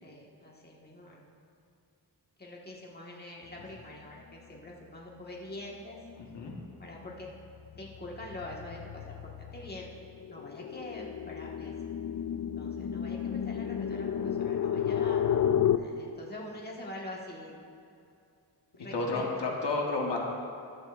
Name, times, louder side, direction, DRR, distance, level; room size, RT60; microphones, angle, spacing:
voice 1, 0.0-1.2 2.4-6.0 6.8-7.3 7.8-9.1 9.5-9.9 10.3-11.7 12.6-15.2 15.8-17.5 18.7-19.2, left 1 dB, 25° left, -3 dB, 1.5 m, -44 dB
sound 1, 6.1-6.4 6.8-15.8, left 9 dB, 50° left, 0.4 m, -32 dB
voice 2, 6.2-6.5 18.9-20.2, left 3 dB, 85° left, -1 dB, 1.4 m, -31 dB
14.0 x 11.0 x 2.5 m, 2.6 s
wide cardioid pair, 90°, 41 cm